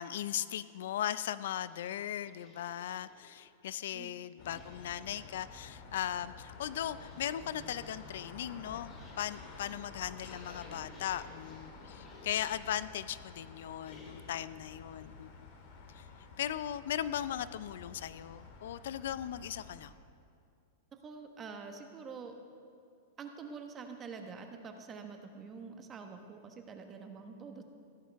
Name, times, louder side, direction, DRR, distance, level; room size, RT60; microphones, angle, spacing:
voice 1, 0.0-15.3 15.9-16.1 16.4-19.9, left 11 dB, 75° left, 16 dB, 0.4 m, -38 dB
sound 1, 1.6-3.5 4.3-5.6 6.3-12.8 13.8-14.5, left 2 dB, 25° left, 2.6 m, -58 dB
sound 2, 4.4-19.9, left 4 dB, 55° left, 1.9 m, -51 dB
voice 2, 21.0-22.3 23.2-27.6, right 5 dB, 25° right, 5 dB, 1.1 m, -46 dB
15.5 x 13.5 x 3.5 m, 2.4 s
supercardioid pair, 145°, 0 cm